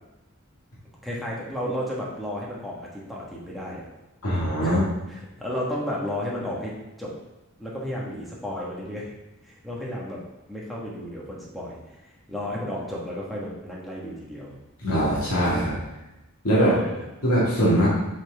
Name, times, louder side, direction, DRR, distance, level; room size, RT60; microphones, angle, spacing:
voice 1, 1.0-3.9 4.6-4.8 5.1-6.7 7.0-7.1 7.6-9.1 9.4-10.2 10.5-11.8 12.3-14.5 16.5-17.0, equal, ahead, -5 dB, 1.5 m, -32 dB
voice 2, 4.2-4.8 14.8-15.8 16.4-16.7 17.2-17.9, equal, 85° left, -8 dB, 2.0 m, -21 dB
7.9 x 4.4 x 3.5 m, 0.98 s
head